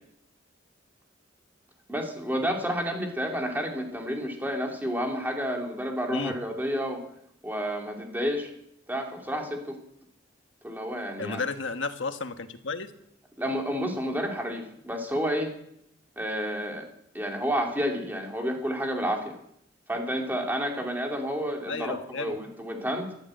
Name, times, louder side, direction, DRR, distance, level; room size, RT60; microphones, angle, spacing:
voice 1, 1.9-7.0 7.4-8.5 8.9-9.8 10.6-11.4 13.4-15.5 16.2-16.8 17.1-19.3 19.9-23.1, equal, 10° right, 1 dB, 2.9 m, -30 dB
voice 2, 11.2-12.9 21.7-22.4, left 4 dB, 80° left, 8 dB, 1.4 m, -32 dB
14.5 x 12.5 x 7.8 m, 0.73 s
head